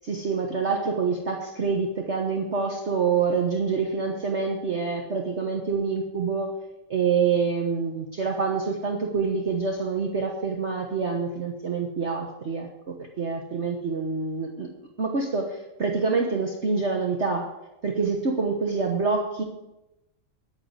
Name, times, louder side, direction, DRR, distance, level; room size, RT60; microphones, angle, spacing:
voice 1, 0.0-6.5 6.9-14.7 15.0-17.5 17.8-19.4, right 5 dB, 45° right, 1 dB, 1.4 m, -26 dB
9.8 x 9.1 x 8.1 m, 0.93 s
omnidirectional pair, 1.8 m